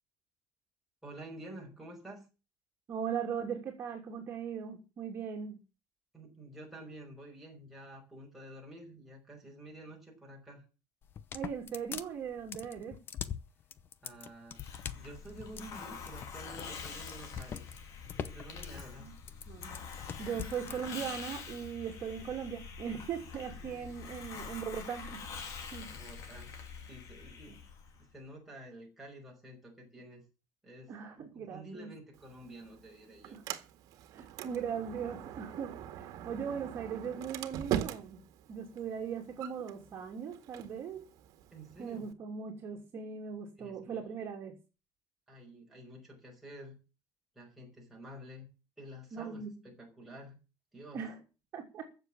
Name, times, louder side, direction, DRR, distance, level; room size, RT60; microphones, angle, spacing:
voice 1, 1.0-2.3 6.1-10.6 14.0-14.6 14.9-17.7 18.1-19.1 23.6-24.3 25.9-26.5 26.9-27.6 28.0-30.2 30.6-33.4 41.5-42.1 43.6-44.2 45.3-46.8 47.4-48.5 48.8-50.4 50.7-51.0, right 1 dB, 5° right, -2 dB, 5.5 m, -50 dB
voice 2, 2.9-5.6 11.3-13.0 19.0-19.1 19.5-19.8 20.2-25.2 25.7-25.9 27.5-27.6 30.9-31.9 33.3-33.4 34.1-38.2 38.5-41.0 41.8-44.6 49.1-49.7 50.9-51.2 51.5-51.8, right 7 dB, 35° right, 0 dB, 2.9 m, -39 dB
sound 1, 11.0-20.8, left 8 dB, 30° left, 0.8 m, -43 dB
Hiss, 14.5-28.0, left 5 dB, 50° left, 3.0 m, -46 dB
Sliding door, 32.1-42.1, right 11 dB, 60° right, 1.9 m, -42 dB
15.0 x 7.4 x 8.7 m, 0.31 s
cardioid pair, 180°, 7 cm